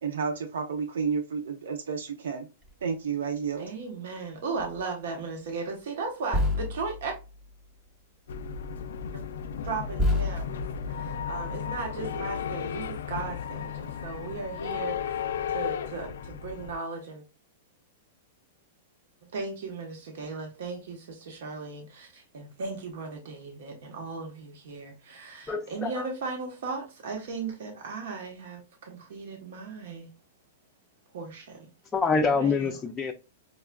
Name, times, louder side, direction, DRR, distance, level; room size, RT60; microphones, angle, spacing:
voice 1, 0.0-2.5 2.8-3.6, right 6 dB, 85° right, 0.6 m, -31 dB
sound 1, 2.6-2.8 4.6-4.8 6.3-7.9 9.1-9.2 10.0-11.7 13.3-13.4 13.6-14.2 14.9-15.5 16.2-16.4, left 1 dB, 25° right, 0.9 m, -31 dB
voice 2, 3.6-7.1 9.1-9.2 9.6-10.6 10.9-17.2 19.3-30.1 31.1-31.7 32.4-32.7, right 4 dB, 70° right, 1.0 m, -36 dB
sound 2, 8.3-16.7, left 7 dB, 85° left, 0.3 m, -34 dB
voice 3, 25.5-26.1 31.9-33.1, left 4 dB, 15° left, 0.4 m, -26 dB
5.3 x 2.4 x 2.2 m
hypercardioid pair, 150°, 0 cm